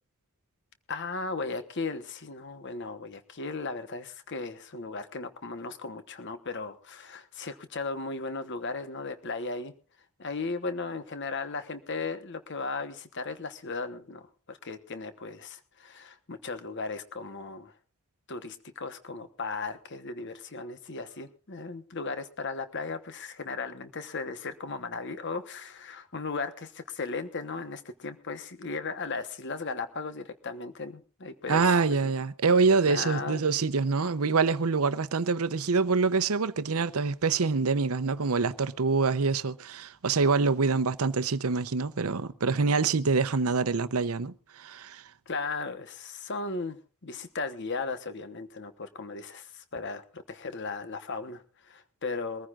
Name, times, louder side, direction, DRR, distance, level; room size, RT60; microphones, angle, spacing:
voice 1, 0.9-9.7 10.2-17.7 18.3-32.1 32.8-33.4 45.3-52.5, left 3 dB, 55° left, 1.1 m, -36 dB
voice 2, 31.5-45.0, right 4 dB, 80° right, 0.8 m, -25 dB
23.0 x 14.5 x 2.5 m
head